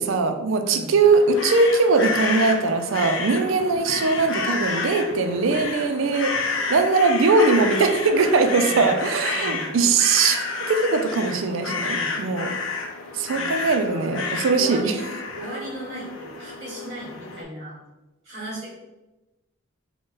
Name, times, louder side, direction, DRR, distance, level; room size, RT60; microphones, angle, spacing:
voice 1, 0.0-6.3 6.7-12.6 13.1-14.9, right 4 dB, 75° right, 7 dB, 0.4 m, -21 dB
voice 2, 0.6-1.0 8.4-8.9 9.3-9.7 11.8-12.2 13.2-14.1 14.5-15.0 15.3-17.8 18.2-18.7, equal, 35° right, -6 dB, 1.1 m, -36 dB
sound 1, 1.0-17.4, left 4 dB, 70° left, 0.5 m, -30 dB
3.8 x 2.2 x 3.8 m, 1.1 s
head